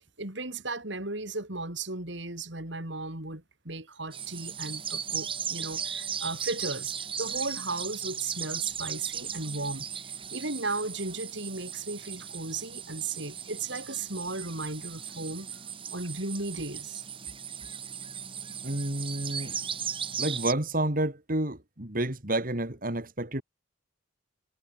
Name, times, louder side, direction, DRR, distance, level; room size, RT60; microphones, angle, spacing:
voice 1, 0.2-15.5 15.9-17.0, right 3 dB, 60° right, 4.3 m, -35 dB
sound 1, 4.1-20.5, right 7 dB, 25° right, 4.1 m, -37 dB
voice 2, 18.6-19.5 20.2-23.4, right 1 dB, 45° right, 3.1 m, -30 dB
head